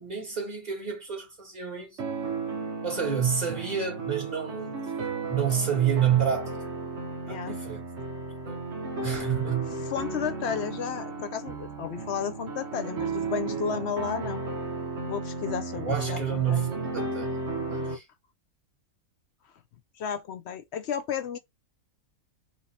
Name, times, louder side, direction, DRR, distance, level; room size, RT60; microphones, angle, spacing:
voice 1, 0.0-2.0 2.8-4.7 5.3-6.7 7.3-7.9 8.5-8.6 9.0-9.8 15.7-17.3 17.7-18.1, right 8 dB, 25° right, 2.4 m, -28 dB
sound 1, 2.0-18.0, right 3 dB, 50° right, 1.2 m, -34 dB
voice 2, 7.3-7.6 9.8-14.4 15.1-16.7 20.0-21.4, left 7 dB, 60° left, 0.7 m, -33 dB
4.5 x 2.8 x 4.1 m
omnidirectional pair, 1.6 m